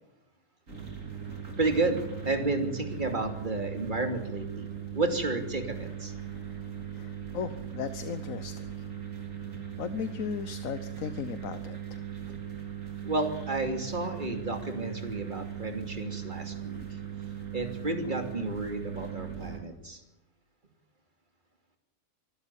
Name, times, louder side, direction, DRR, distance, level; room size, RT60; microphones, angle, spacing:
sound 1, 0.7-19.6, right 9 dB, 65° right, 3.9 m, -39 dB
voice 1, 1.6-6.1 12.3-12.4 13.0-17.0 17.5-20.0, right 2 dB, 35° right, 5 dB, 3.1 m, -31 dB
voice 2, 7.3-8.5 9.8-11.8, left 7 dB, 70° left, 12 dB, 1.4 m, -35 dB
26.0 x 12.0 x 10.0 m, 0.90 s
omnidirectional pair, 1.4 m